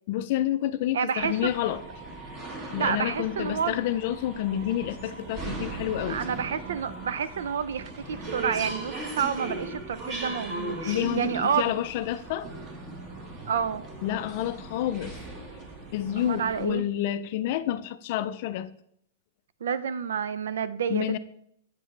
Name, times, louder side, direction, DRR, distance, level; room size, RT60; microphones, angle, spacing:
voice 1, 0.1-1.8 2.7-6.2 10.9-12.5 14.0-15.2 15.9-18.7 20.9-21.2, left 12 dB, 45° left, 0.4 m, -29 dB
voice 2, 0.9-1.7 2.7-3.8 6.1-11.8 13.5-13.8 16.2-16.8 19.6-21.2, right 7 dB, 80° right, 0.5 m, -29 dB
sound 1, 1.2-16.7, right 2 dB, 25° right, 1.4 m, -38 dB
sound 2, 4.0-4.1 4.8-8.4 9.1-9.2 10.0-10.1 10.7-10.8 11.5-11.6 12.2-12.3 13.0-13.7 14.2-14.5, right 11 dB, 60° right, 0.9 m, -48 dB
8.1 x 7.9 x 3.2 m
supercardioid pair, 160°, 0 cm